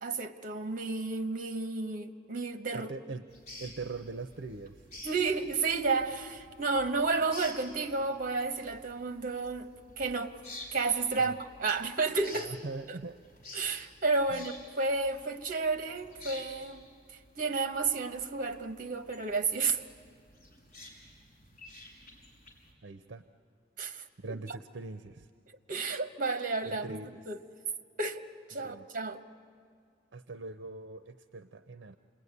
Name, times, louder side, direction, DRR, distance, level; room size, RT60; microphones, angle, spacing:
voice 1, 0.0-2.9 5.0-9.7 10.0-10.4 10.7-12.5 13.5-16.9 17.4-19.8 23.8-24.6 25.5-27.0 27.3-27.4 28.0-28.2 28.5-29.2, right 3 dB, 45° right, 1.1 m, -31 dB
voice 2, 2.7-3.2 3.6-4.9 11.2-11.4 12.3-13.2 14.3-14.4 22.8-23.2 24.2-25.3 26.6-27.3 28.6-28.9 30.1-32.0, right 3 dB, 65° right, 0.6 m, -42 dB
sound 1, 3.3-22.7, left 1 dB, 40° left, 5.6 m, -51 dB
28.0 x 20.5 x 9.6 m
head